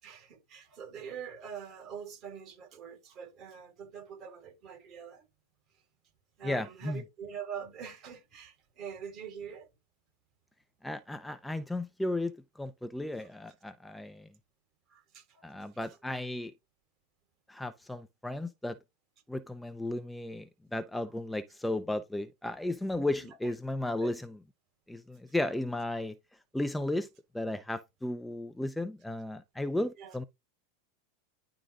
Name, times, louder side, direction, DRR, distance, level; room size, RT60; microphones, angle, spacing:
voice 1, 0.0-5.2 6.4-9.7 13.2-13.3 14.9-15.5 15.8-16.0 21.0-21.1 23.2-23.5 24.0-24.1 30.0-30.2, right 7 dB, 45° right, 5.3 m, -44 dB
voice 2, 6.4-7.0 10.8-14.3 15.4-16.5 17.5-18.8 19.3-24.4 24.9-26.2 26.5-27.1 27.3-30.2, left 1 dB, 5° left, 0.6 m, -34 dB
11.0 x 3.9 x 3.6 m
hypercardioid pair, 110°, 0 cm